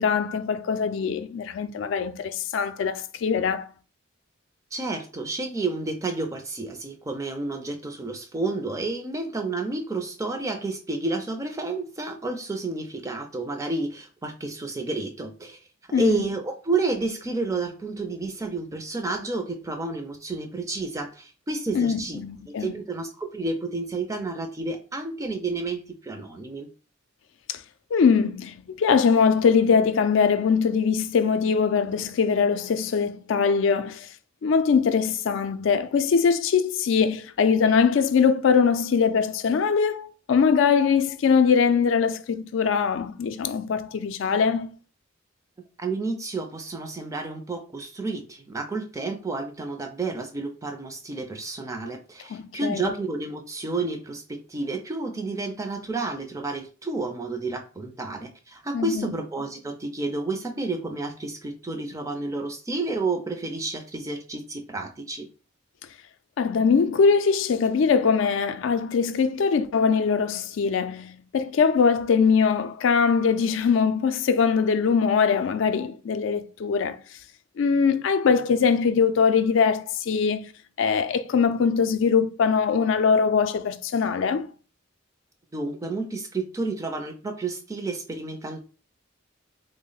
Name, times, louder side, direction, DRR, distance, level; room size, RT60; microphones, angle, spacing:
voice 1, 0.0-3.7 15.9-16.2 21.7-22.7 27.5-27.6 27.9-34.1 34.4-44.7 52.3-52.9 58.7-59.1 66.4-77.0 77.6-80.5 80.8-84.5, left 6 dB, 70° left, 0.3 m, -22 dB
voice 2, 4.7-15.6 15.9-26.7 45.8-65.3 85.5-88.6, right 3 dB, 15° right, 0.4 m, -30 dB
3.5 x 2.0 x 3.8 m
head